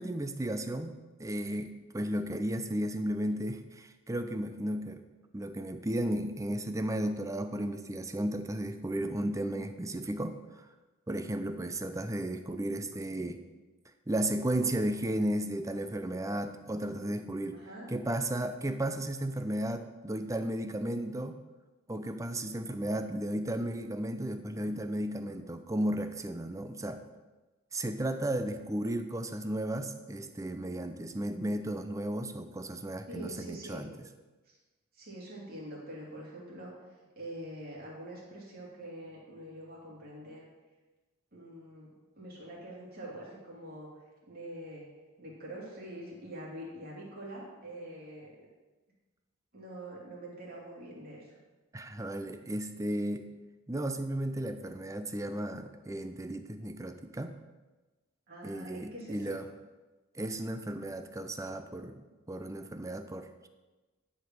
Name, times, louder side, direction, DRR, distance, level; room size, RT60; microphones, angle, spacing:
voice 1, 0.0-5.0 5.3-10.7 11.1-13.4 14.1-17.6 17.9-21.4 21.9-27.0 27.7-33.9 51.7-53.3 53.7-57.4 58.4-59.4 60.1-63.5, right 1 dB, 15° right, 8 dB, 0.6 m, -34 dB
voice 2, 17.5-17.9 33.1-33.8 34.5-34.6 34.9-36.7 37.2-40.4 41.3-43.9 44.3-44.9 45.2-48.3 49.5-51.4 58.3-59.4, right 1 dB, 45° right, -4 dB, 2.9 m, -45 dB
11.0 x 5.2 x 6.2 m, 1.2 s
head